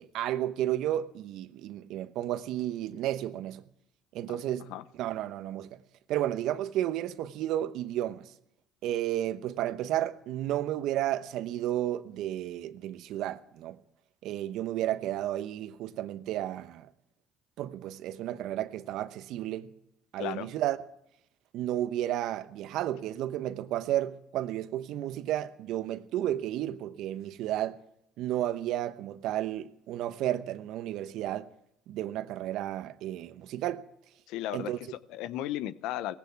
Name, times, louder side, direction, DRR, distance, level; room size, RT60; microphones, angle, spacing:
voice 1, 0.0-3.6 4.1-4.7 5.0-5.8 6.1-8.3 8.8-13.8 14.2-16.9 17.6-19.7 20.1-20.8 21.5-27.8 28.2-31.5 31.9-33.8 34.5-34.8, right 12 dB, 70° right, 1.0 m, -32 dB
voice 2, 20.2-20.5 34.3-36.1, left 13 dB, 75° left, 0.8 m, -35 dB
18.5 x 16.0 x 4.7 m
supercardioid pair, 75°, 0 cm